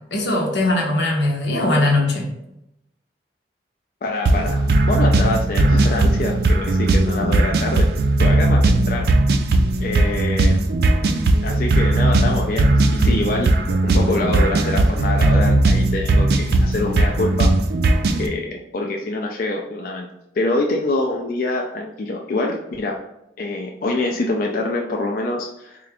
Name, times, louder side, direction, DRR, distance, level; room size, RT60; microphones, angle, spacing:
voice 1, 0.1-2.3, left 2 dB, 85° left, 0 dB, 0.9 m, -20 dB
voice 2, 4.0-7.9 8.2-9.1 9.8-10.6 11.4-13.5 13.8-17.5 18.2-20.1 20.4-23.0 23.4-25.8, left 2 dB, 50° left, 1 dB, 0.4 m, -25 dB
sound 1, 4.3-18.3, right 2 dB, 60° right, 0.4 m, -17 dB
3.7 x 2.4 x 3.3 m, 0.85 s
head